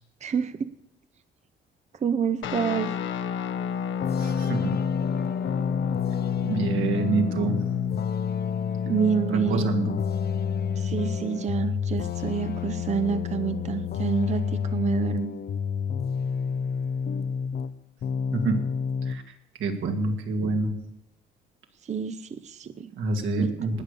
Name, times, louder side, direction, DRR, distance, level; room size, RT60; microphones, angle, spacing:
voice 1, 0.2-0.7 2.0-2.9 8.8-9.7 10.8-15.3 21.8-22.9 23.4-23.8, right 7 dB, 35° right, 10 dB, 0.6 m, -28 dB
Guitar, 2.4-11.5, left 7 dB, 75° left, 1.1 m, -31 dB
sound 1, 4.0-17.7 18.0-19.2, left 7 dB, 55° left, 0.7 m, -29 dB
voice 2, 4.2-4.7 6.4-7.6 9.3-9.9 18.3-18.6 19.1-19.2 19.6-20.8 23.0-23.8, right 3 dB, 80° right, 4 dB, 2.4 m, -26 dB
19.5 x 6.7 x 6.8 m, 0.87 s
cardioid pair, 90°, 20 cm